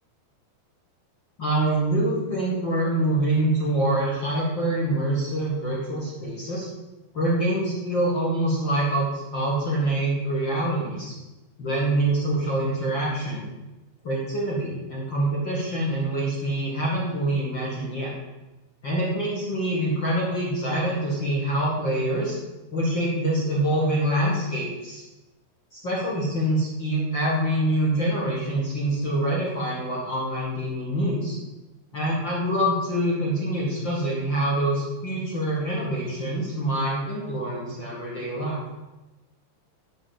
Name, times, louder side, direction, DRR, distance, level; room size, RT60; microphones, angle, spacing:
voice 1, 1.4-6.7 7.1-11.1 11.6-13.4 14.0-18.1 18.8-22.4 22.7-25.0 25.7-31.4 31.9-38.6, right 1 dB, 55° left, -5 dB, 1.2 m, -25 dB
7.4 x 6.1 x 7.7 m, 1.1 s
omnidirectional pair, 5.2 m